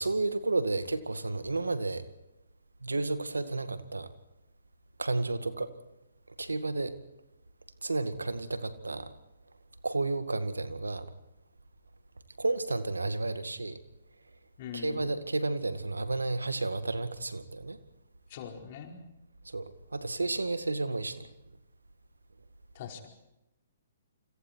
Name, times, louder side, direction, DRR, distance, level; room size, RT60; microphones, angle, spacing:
voice 1, 0.0-2.0 2.8-4.1 5.0-5.7 6.4-6.9 7.8-9.1 9.8-11.1 12.4-13.8 14.7-17.8 19.5-21.3, right 2 dB, 85° right, 10 dB, 2.0 m, -31 dB
voice 2, 14.6-15.1 18.3-18.9 22.7-23.1, left 8 dB, 45° left, 2 dB, 4.8 m, -42 dB
28.5 x 26.0 x 4.6 m, 0.91 s
figure-of-eight pair, 130°, 0 cm